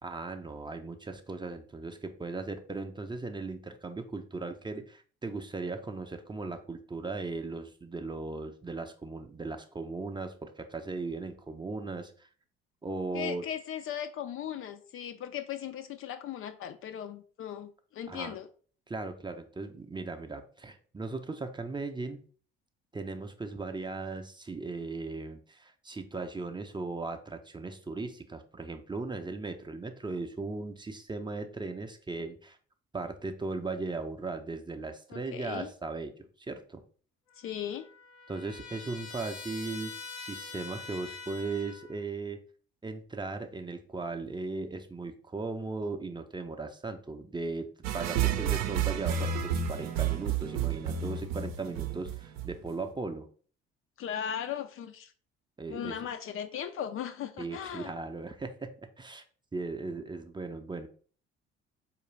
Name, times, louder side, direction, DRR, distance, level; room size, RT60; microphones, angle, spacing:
voice 1, 0.0-12.3 12.8-13.4 18.1-18.4 18.9-22.3 22.9-32.6 32.9-36.8 38.3-39.9 40.2-42.4 42.8-47.7 47.9-53.3 55.6-56.0 57.4-59.2 59.5-60.9, right 3 dB, 15° right, 0.6 m, -37 dB
voice 2, 13.1-18.5 35.1-35.7 37.4-37.9 54.0-55.1 55.7-57.9, left 9 dB, 45° left, 0.5 m, -37 dB
Trumpet, 37.3-42.0, left 4 dB, 85° left, 0.7 m, -45 dB
sound 1, 47.8-52.9, right 8 dB, 60° right, 0.6 m, -31 dB
4.4 x 2.5 x 3.1 m
hypercardioid pair, 50°, 31 cm